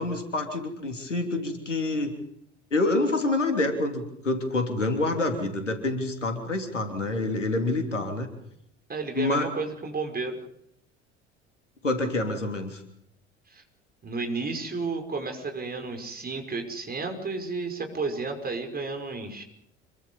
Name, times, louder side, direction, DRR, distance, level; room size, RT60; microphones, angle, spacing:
voice 1, 0.0-2.1 2.7-8.3 9.1-9.5 11.8-12.8, left 2 dB, 85° left, 6 dB, 3.2 m, -27 dB
voice 2, 8.9-10.4 13.5-13.6 14.0-19.4, right 3 dB, 25° right, 4 dB, 5.6 m, -32 dB
27.0 x 23.0 x 5.5 m, 0.75 s
figure-of-eight pair, 60°, 36 cm